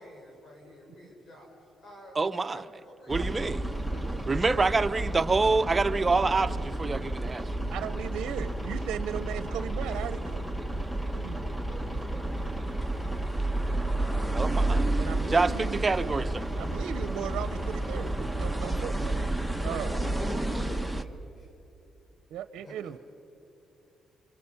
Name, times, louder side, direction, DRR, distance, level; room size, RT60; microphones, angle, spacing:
voice 1, 0.0-2.2 2.5-3.3 3.9-4.4 9.3-13.1 17.6-18.1 19.6-21.5 22.6-22.9, left 1 dB, 45° left, 5.5 m, -49 dB
voice 2, 2.2-2.6 3.1-3.6 4.3-7.5 14.3-14.9 15.3-16.5, right 3 dB, 25° right, 0.7 m, -26 dB
sound 1, 3.1-21.0, right 1 dB, ahead, 1.0 m, -31 dB
voice 3, 7.7-10.4 11.1-11.4 15.0-15.8 16.6-19.3 19.6-20.0 22.3-23.0, right 10 dB, 80° right, 0.6 m, -37 dB
27.5 x 24.5 x 5.9 m
cardioid pair, 90°, 0 cm